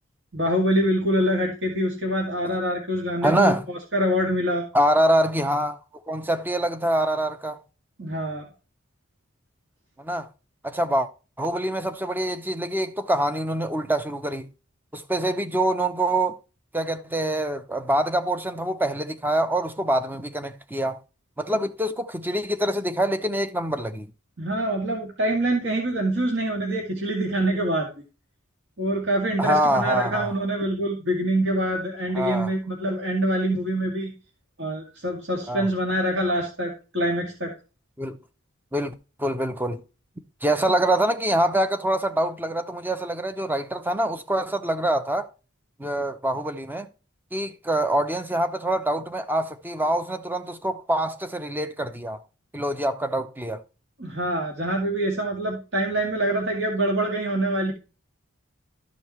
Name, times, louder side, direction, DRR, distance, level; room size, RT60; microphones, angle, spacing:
voice 1, 0.3-4.7 8.0-8.5 24.4-27.9 28.8-34.1 34.6-37.5 54.0-57.7, right 1 dB, 55° right, 2.2 m, -25 dB
voice 2, 3.2-3.6 4.7-5.8 6.1-7.6 10.0-10.3 10.6-11.1 11.4-14.5 14.9-16.4 16.7-21.0 21.4-24.1 29.4-30.3 32.1-32.5 35.5-35.7 38.0-38.2 38.7-38.9 39.2-39.8 40.4-45.3 45.8-46.9 47.3-52.2 52.5-53.6, right 1 dB, 10° right, 0.7 m, -25 dB
13.0 x 5.3 x 3.0 m
head